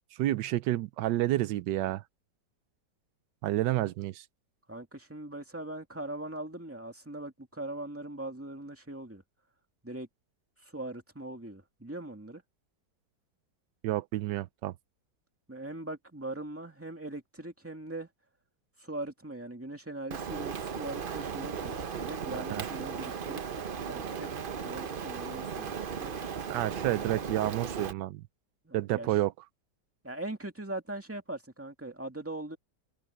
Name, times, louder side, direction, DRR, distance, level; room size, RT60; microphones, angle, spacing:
voice 1, 0.1-2.0 3.4-4.2 13.8-14.7 22.3-22.6 26.5-28.2 28.7-29.3, right 15 dB, 85° right, 1.3 m, -30 dB
voice 2, 4.7-9.2 9.8-10.1 10.6-12.4 15.5-18.1 18.8-23.4 23.9-24.3 24.6-26.1 28.6-29.1 30.0-32.6, right 2 dB, 10° right, 2.3 m, -40 dB
Rain, 20.1-27.9, right 6 dB, 45° right, 0.7 m, -36 dB
omnidirectional pair, 1.9 m